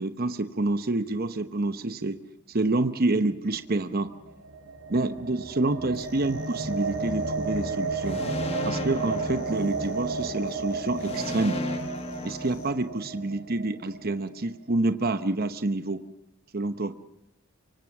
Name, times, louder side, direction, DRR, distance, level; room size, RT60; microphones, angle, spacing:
voice 1, 0.0-2.2 2.5-4.1 4.9-8.2 8.7-11.6 12.2-16.0 16.5-17.0, right 2 dB, 40° right, 10 dB, 0.9 m, -28 dB
sound 1, 4.1-14.2, right 3 dB, 75° right, 3.6 m, -33 dB
sound 2, 5.9-12.7, left 3 dB, 45° left, 3.3 m, -52 dB
sound 3, 8.0-10.2 11.0-13.2, left 1 dB, 25° left, 1.5 m, -35 dB
24.5 x 24.5 x 6.1 m, 0.83 s
head